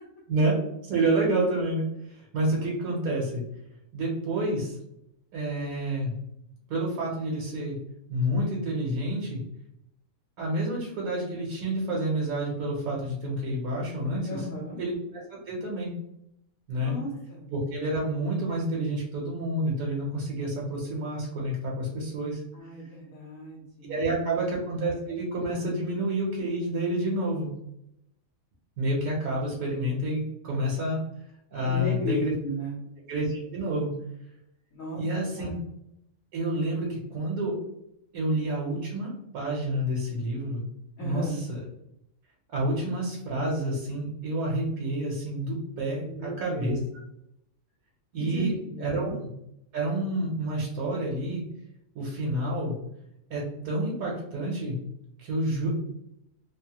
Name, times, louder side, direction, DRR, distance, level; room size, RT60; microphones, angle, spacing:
voice 1, 0.3-3.4 3.9-4.8 5.3-6.1 6.7-7.8 8.1-9.4 10.4-14.5 14.8-15.2 15.5-15.9 16.7-16.9 17.5-22.4 23.9-27.5 28.8-31.0 31.5-32.3 33.1-33.9 34.9-35.5 36.3-37.5 38.1-40.6 41.0-41.6 42.5-46.8 48.1-49.2 49.7-51.4 51.9-52.7 53.3-54.8 55.2-55.7, right 1 dB, 85° right, -3 dB, 1.2 m, -29 dB
voice 2, 14.3-14.8 16.8-17.5 22.5-24.4 31.6-32.8 34.7-35.0 35.4-35.6 41.0-41.4 46.0-46.8 48.2-49.0, equal, 75° left, -5 dB, 1.2 m, -35 dB
3.2 x 2.1 x 2.8 m, 0.81 s
omnidirectional pair, 1.4 m